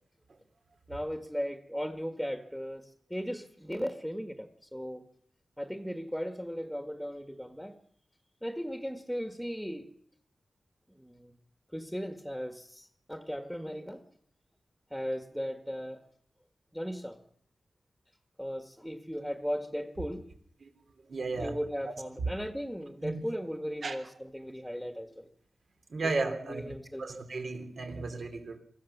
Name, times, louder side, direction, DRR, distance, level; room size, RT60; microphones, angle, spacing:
voice 1, 0.9-5.0 5.6-7.7 8.4-9.9 11.0-11.3 11.7-14.0 14.9-16.0 16.7-17.2 18.4-20.3 21.4-25.3 26.0-27.0, equal, ahead, 7 dB, 1.7 m, -37 dB
voice 2, 21.0-21.6 22.2-22.3 23.0-23.2 23.8-24.0 25.9-26.7 27.0-28.6, right 3 dB, 60° right, 6 dB, 3.4 m, -34 dB
24.0 x 15.0 x 7.3 m, 0.68 s
cardioid pair, 75°, 0 cm